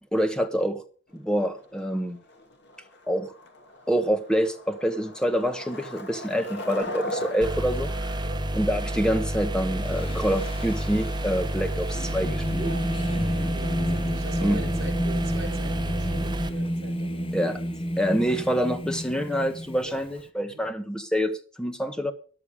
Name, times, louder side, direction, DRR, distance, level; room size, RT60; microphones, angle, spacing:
voice 1, 0.1-0.8 1.1-2.2 3.1-3.3 3.9-7.9 8.5-12.7 14.4-14.6 17.3-17.6 18.0-22.1, equal, 5° left, 1.4 m, -26 dB
Skateboard, 1.1-16.3, left 1 dB, 55° left, 2.5 m, -42 dB
sound 1, 7.4-16.5, right 1 dB, 20° right, 1.2 m, -30 dB
Singing, 9.8-20.2, equal, 25° left, 1.2 m, -31 dB
voice 2, 11.6-12.0 12.6-17.3 19.7-19.9 20.4-20.6, right 2 dB, 55° right, 4.4 m, -41 dB
13.5 x 11.0 x 5.0 m
head